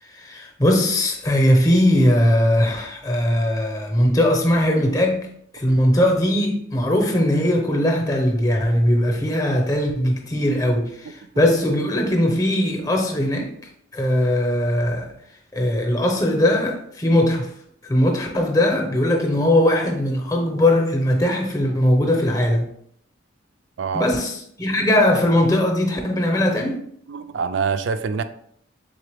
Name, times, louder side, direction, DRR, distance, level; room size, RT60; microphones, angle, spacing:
voice 1, 0.1-5.3 5.5-13.5 13.9-15.1 15.5-17.5 17.8-22.7 23.9-26.8, left 1 dB, 15° left, 0.6 m, -20 dB
voice 2, 23.8-24.1 27.1-28.2, right 5 dB, 60° right, 0.3 m, -25 dB
3.9 x 3.7 x 3.3 m
head